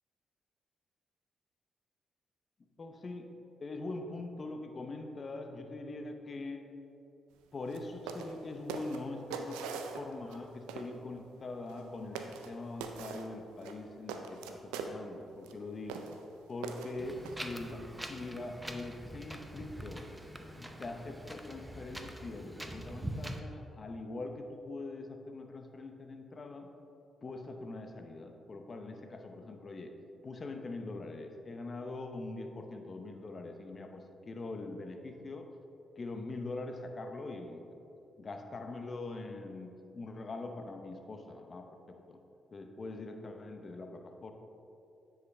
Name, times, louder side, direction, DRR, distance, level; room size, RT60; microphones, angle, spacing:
voice 1, 2.8-3.2 3.6-6.6 7.5-16.0 16.5-20.1 20.6-26.7 27.2-29.9 30.2-35.5 36.0-37.6 38.2-42.2 42.5-44.3, left 2 dB, 45° left, 5 dB, 0.8 m, -43 dB
sound 1, 7.7-7.8 8.1-8.4 8.7-10.4 10.7-10.9 11.7-11.8 12.2-12.5 12.8-13.3 13.6-14.9 15.4-15.5 15.9-16.2 16.6-17.4, right 6 dB, 85° right, 0.4 m, -41 dB
Wind, 17.0-23.4, right 1 dB, 10° right, 0.7 m, -44 dB
9.5 x 4.9 x 3.2 m, 2.7 s
hypercardioid pair, 45°, 0 cm